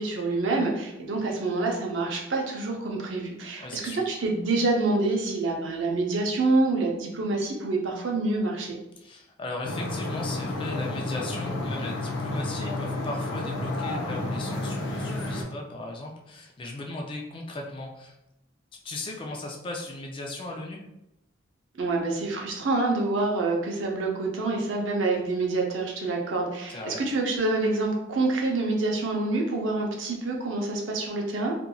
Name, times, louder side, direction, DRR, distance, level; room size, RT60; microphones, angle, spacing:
voice 1, 0.0-8.8 21.8-31.5, right 3 dB, 70° right, 0 dB, 0.6 m, -27 dB
voice 2, 3.6-4.0 9.0-18.2 18.8-20.8 26.7-27.0, left 2 dB, 25° left, 0 dB, 0.4 m, -37 dB
sound 1, 9.6-15.4, left 2 dB, 85° left, 0.6 m, -31 dB
2.9 x 2.5 x 2.2 m, 0.88 s
head